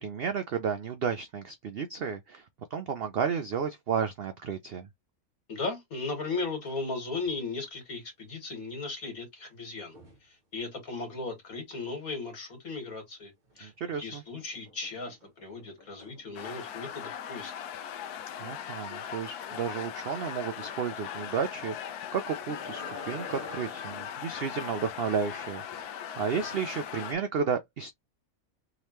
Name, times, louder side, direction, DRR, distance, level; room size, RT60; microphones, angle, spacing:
voice 1, 0.0-2.5 2.7-4.9 13.6-14.2 18.4-27.9, right 6 dB, 75° right, 0.5 m, -32 dB
voice 2, 5.5-10.0 10.2-13.7 14.0-17.5, left 3 dB, 65° left, 2.2 m, -36 dB
sound 1, 6.2-6.8 7.1-7.5 9.8-10.3 13.4-13.9 14.4-16.8 17.2-17.3 17.7-17.8 18.2-18.3 20.6-20.8 22.1-24.6 25.4-25.8, left 1 dB, 35° right, 1.2 m, -49 dB
sound 2, 16.4-27.2, left 9 dB, 85° left, 1.2 m, -39 dB
3.7 x 3.3 x 3.0 m
omnidirectional pair, 1.6 m